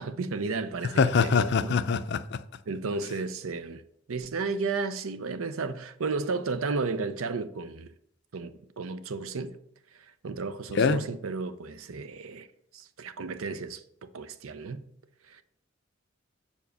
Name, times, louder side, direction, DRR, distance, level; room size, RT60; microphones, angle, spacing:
voice 1, 0.0-1.8 2.7-3.8 4.1-7.9 8.3-9.6 9.9-12.5 12.7-14.9 15.3-15.4, right 4 dB, 85° right, 0.6 m, -33 dB
voice 2, 1.0-2.4 10.8-11.0, left 5 dB, 55° left, 0.5 m, -23 dB
7.3 x 5.0 x 6.8 m
head